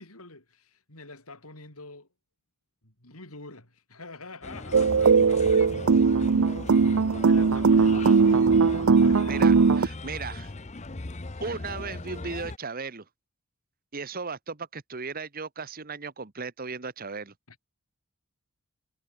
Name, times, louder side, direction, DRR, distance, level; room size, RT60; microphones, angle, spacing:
voice 1, 0.0-2.1 2.8-5.6 7.2-9.7 17.5-17.6, left 2 dB, 85° left, 7.6 m, -46 dB
Bird, 4.4-12.6, left 2 dB, 30° left, 0.9 m, -38 dB
sound 1, 4.7-9.9, right 5 dB, 70° right, 0.6 m, -20 dB
voice 2, 9.3-10.5 11.4-13.0 13.9-17.3, right 4 dB, 40° right, 1.2 m, -36 dB
head